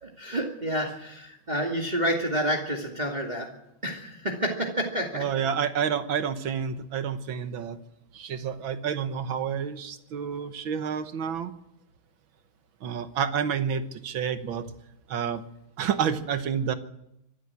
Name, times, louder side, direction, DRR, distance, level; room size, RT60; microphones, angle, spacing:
voice 1, 0.0-3.5 3.8-5.3, equal, 20° right, 0 dB, 2.4 m, -29 dB
voice 2, 5.1-7.8 8.1-11.5 12.8-14.7 15.1-15.4 15.8-16.7, right 7 dB, 80° right, 10 dB, 1.9 m, -29 dB
24.0 x 12.5 x 8.5 m, 0.82 s
omnidirectional pair, 2.2 m